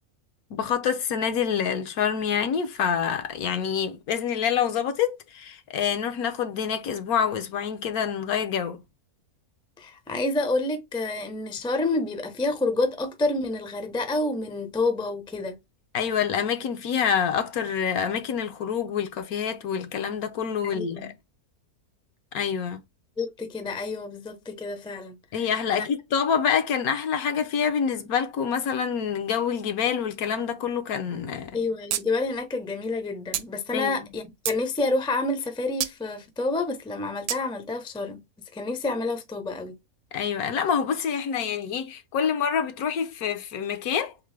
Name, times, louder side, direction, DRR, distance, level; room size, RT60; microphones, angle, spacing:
voice 1, 0.5-8.8 15.9-21.1 22.3-22.8 25.3-31.5 33.7-33.9 40.1-44.1, left 7 dB, 75° left, 1.2 m, -26 dB
voice 2, 9.8-15.6 20.6-21.1 23.2-25.2 25.7-25.9 31.5-38.2 38.5-39.7, left 2 dB, 5° left, 0.3 m, -28 dB
sound 1, 31.9-32.0 32.3-32.4 33.3-33.5 34.1-34.6 35.8-36.0 37.3-37.4, right 11 dB, 80° right, 1.1 m, -28 dB
3.7 x 3.6 x 3.2 m
omnidirectional pair, 1.6 m